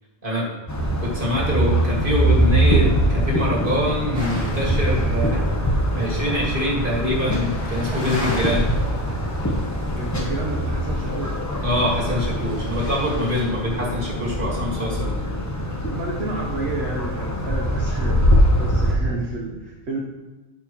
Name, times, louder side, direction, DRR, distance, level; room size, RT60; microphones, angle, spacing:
sound 1, 0.7-18.9, equal, 15° left, 0.9 m, -23 dB
voice 1, 1.0-5.5 6.0-8.7 11.6-15.2, left 1 dB, 50° right, -3 dB, 2.3 m, -24 dB
sound 2, 4.1-13.4, left 1 dB, 35° left, 2.6 m, -38 dB
voice 2, 10.0-11.4 15.9-20.0, right 2 dB, 75° right, -4 dB, 1.4 m, -31 dB
11.5 x 6.4 x 3.1 m, 1.1 s
omnidirectional pair, 1.1 m